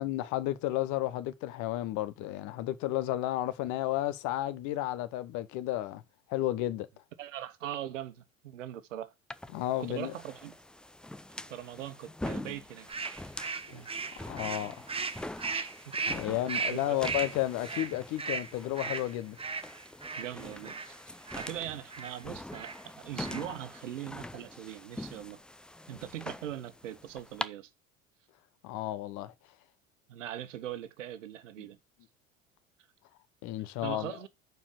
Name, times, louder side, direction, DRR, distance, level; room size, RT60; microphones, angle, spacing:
voice 1, 0.0-6.0 6.3-6.9 9.5-10.1 13.7-13.8 14.3-14.8 16.1-19.4 28.6-29.3 33.4-34.2, left 14 dB, 50° left, 1.1 m, -32 dB
voice 2, 7.2-9.1 9.8-10.5 11.5-13.2 13.7-13.9 14.2-14.3 15.5-15.7 16.7-17.3 20.2-25.4 25.9-27.7 30.1-31.8 33.8-34.3, right 11 dB, 70° right, 1.2 m, -41 dB
sound 1, 9.3-27.5, left 1 dB, ahead, 0.4 m, -44 dB
sound 2, 12.9-20.9 21.3-21.6 21.9-22.2 22.5-22.8 23.1-23.6, right 4 dB, 15° right, 1.1 m, -37 dB
7.1 x 4.6 x 6.6 m
figure-of-eight pair, 70°, 39 cm